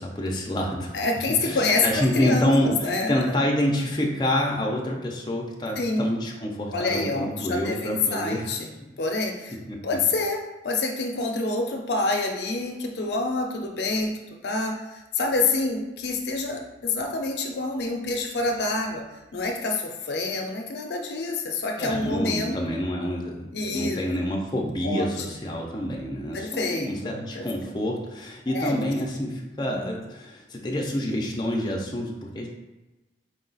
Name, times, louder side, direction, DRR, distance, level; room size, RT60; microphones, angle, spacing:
voice 1, 0.0-1.0 1.4-8.5 9.7-9.8 21.8-32.5, equal, 25° left, -1 dB, 0.5 m, -27 dB
voice 2, 0.9-3.4 5.8-6.1 6.7-8.7 9.0-9.6 9.8-14.2 14.4-19.0 19.3-22.6 23.5-24.0 24.8-25.2 26.3-27.5 28.5-28.8 29.6-30.0, left 3 dB, 65° left, 2 dB, 0.6 m, -27 dB
4.7 x 2.4 x 3.9 m, 1.1 s
head